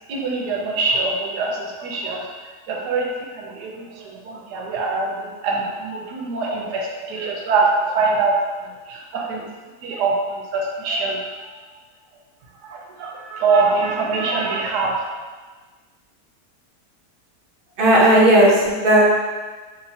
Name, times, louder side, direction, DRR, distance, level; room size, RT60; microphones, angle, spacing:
voice 1, 0.1-2.2 2.7-3.1 3.3-3.9 4.2-7.7 7.9-8.3 8.9-9.4 9.8-10.1 10.5-11.2 12.7-15.1, right 4 dB, 85° right, -1 dB, 1.2 m, -23 dB
voice 2, 17.8-19.0, right 1 dB, 55° right, -5 dB, 0.6 m, -14 dB
3.1 x 3.0 x 2.7 m, 1.4 s
omnidirectional pair, 1.8 m